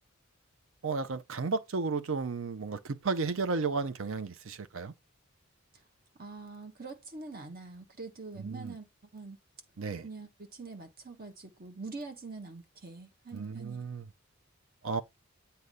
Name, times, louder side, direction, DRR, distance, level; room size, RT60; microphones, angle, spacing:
voice 1, 0.8-4.9 8.4-8.7 9.8-10.1 13.3-14.1 14.8-15.0, right 4 dB, 60° right, 0.6 m, -33 dB
voice 2, 6.2-8.9 9.1-9.4 10.0-13.8, right 3 dB, 40° right, 1.2 m, -44 dB
8.0 x 2.7 x 5.4 m
head